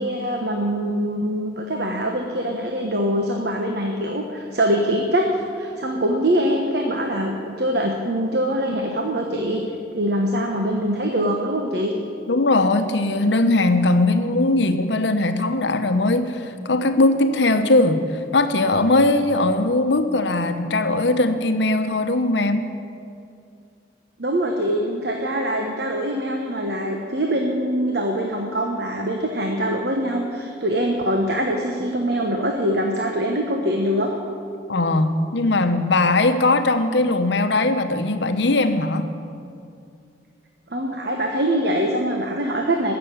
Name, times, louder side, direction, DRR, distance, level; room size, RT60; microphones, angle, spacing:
voice 1, 0.0-9.6 10.0-11.9 24.2-34.1 40.7-42.9, equal, 60° right, 1 dB, 1.2 m, -23 dB
voice 2, 12.3-18.0 18.3-22.7 34.7-39.1, left 2 dB, 75° left, 8 dB, 0.9 m, -19 dB
15.0 x 6.9 x 9.3 m, 2.5 s
head